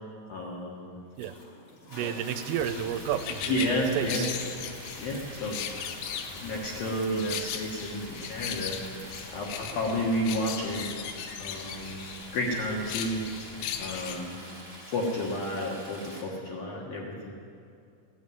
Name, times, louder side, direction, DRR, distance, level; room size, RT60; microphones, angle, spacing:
voice 1, 0.3-1.0 1.9-2.1 3.5-4.3 5.0-5.6 6.4-8.8 9.3-10.9 11.4-12.0 12.3-13.2 13.8-14.4 14.9-17.3, equal, 65° left, -2 dB, 2.5 m, -31 dB
Toilet flush, 1.2-14.2 14.8-14.9, left 2 dB, 45° left, 1.8 m, -50 dB
Stream, 1.9-16.2, equal, 15° left, 0.8 m, -47 dB
voice 2, 1.9-3.7 3.9-4.3, right 9 dB, 85° right, 9 dB, 3.3 m, -31 dB
sound 1, 2.6-14.2, left 8 dB, 80° left, 3.3 m, -38 dB
16.5 x 9.1 x 9.3 m, 2.5 s
omnidirectional pair, 6.0 m